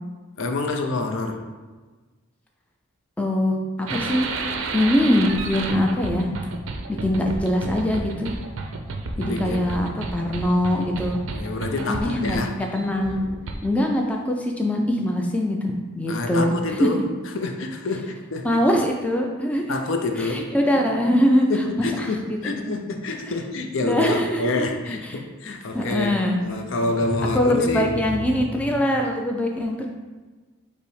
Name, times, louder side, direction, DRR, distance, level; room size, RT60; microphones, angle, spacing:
voice 1, 0.4-1.5 9.2-9.7 11.3-12.6 16.1-18.6 19.7-20.9 21.5-28.0 28.8-28.9, left 2 dB, 70° left, 4 dB, 0.5 m, -27 dB
voice 2, 3.2-4.3 4.7-6.3 6.9-8.3 9.2-11.2 11.9-13.2 13.6-16.5 16.8-16.9 18.4-19.8 20.2-21.5 21.8-22.8 23.8-25.1 25.7-26.4 27.3-29.9, left 1 dB, 5° left, 1 dB, 0.3 m, -23 dB
sound 1, 3.9-13.8, right 3 dB, 70° right, 0.5 m, -31 dB
5.4 x 2.1 x 4.7 m, 1.3 s
head